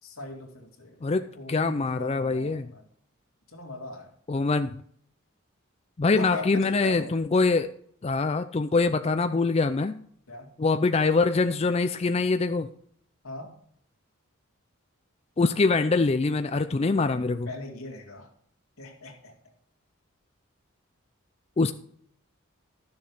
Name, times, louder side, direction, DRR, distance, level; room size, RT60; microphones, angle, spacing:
voice 1, 0.0-2.8 3.5-4.1 6.1-7.2 10.3-10.5 13.2-13.6 16.9-18.3 18.8-19.3, left 2 dB, 85° left, 2.5 m, -40 dB
voice 2, 1.0-2.7 4.3-4.8 6.0-7.7 8.0-10.0 10.6-12.7 15.4-17.5 21.6-21.7, left 3 dB, 30° left, 0.4 m, -24 dB
12.5 x 7.1 x 4.8 m
head